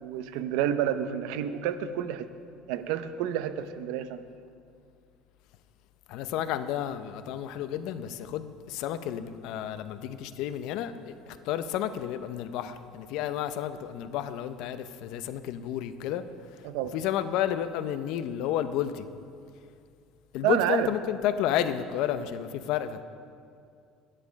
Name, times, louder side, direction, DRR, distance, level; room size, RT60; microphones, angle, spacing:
voice 1, 0.0-2.3 2.7-4.2 16.6-17.0 20.4-20.9, right 10 dB, 75° right, 11 dB, 0.6 m, -29 dB
voice 2, 6.1-16.2 16.5-16.6 16.9-19.1 20.3-23.0, left 10 dB, 60° left, 11 dB, 0.5 m, -31 dB
10.5 x 10.0 x 5.2 m, 2.3 s
cardioid pair, 165°, 0 cm